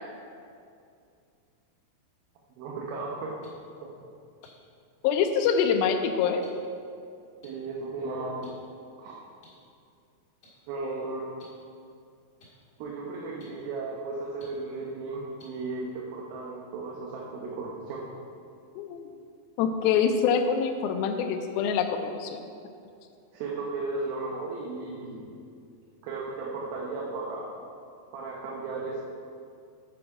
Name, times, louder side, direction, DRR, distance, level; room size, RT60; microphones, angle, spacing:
voice 1, 2.5-3.4 3.8-3.9 7.4-8.5 9.0-9.1 10.7-11.3 12.8-18.0 23.3-25.3 26.0-27.5 28.1-29.0, right 3 dB, 80° right, -3 dB, 2.7 m, -35 dB
Watch Ticking, 3.4-3.5 4.4-4.5 5.4-5.5 6.4-6.5 7.4-7.5 8.4-8.5 9.4-9.5 10.4-10.5 11.4-11.5 12.4-12.5 13.4-13.5 14.4-14.5 15.4-15.5 16.4-16.5, left 2 dB, 35° left, 2.0 m, -53 dB
voice 2, 5.0-6.4 18.8-19.0 19.6-22.4, left 7 dB, 80° left, 5 dB, 2.4 m, -25 dB
9.2 x 7.7 x 4.8 m, 2.4 s
omnidirectional pair, 4.4 m